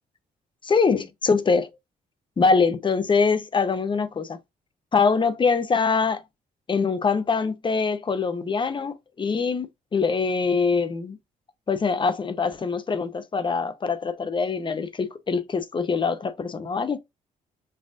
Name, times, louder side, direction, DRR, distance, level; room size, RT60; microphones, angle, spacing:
voice 1, 0.6-1.7 2.4-4.4 4.9-6.2 6.7-11.2 11.7-17.0, left 5 dB, 30° left, 0.7 m, -23 dB
5.4 x 2.5 x 2.5 m
cardioid pair, 75°, 16 cm